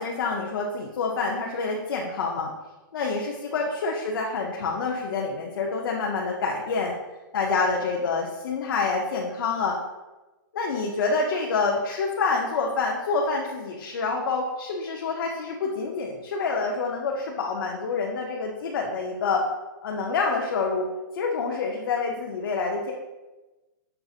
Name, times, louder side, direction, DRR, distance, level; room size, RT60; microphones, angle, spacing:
voice 1, 0.0-2.5 2.9-6.9 7.3-9.8 10.5-19.5 19.8-20.9 21.1-22.9, left 4 dB, 75° left, -1 dB, 0.6 m, -27 dB
6.5 x 2.6 x 2.4 m, 1.1 s
hypercardioid pair, 170°, 12 cm